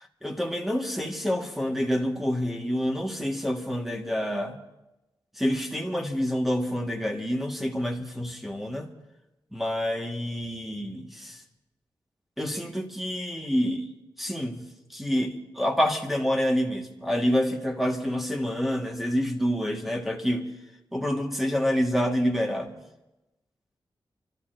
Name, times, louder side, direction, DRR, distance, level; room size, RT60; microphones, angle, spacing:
voice 1, 0.2-4.6 5.4-8.9 9.5-11.4 12.4-13.9 14.2-14.6 14.9-20.5 20.9-22.8, equal, ahead, 1 dB, 1.6 m, -27 dB
30.0 x 12.5 x 2.6 m, 0.96 s
wide cardioid pair, 95°, 9 cm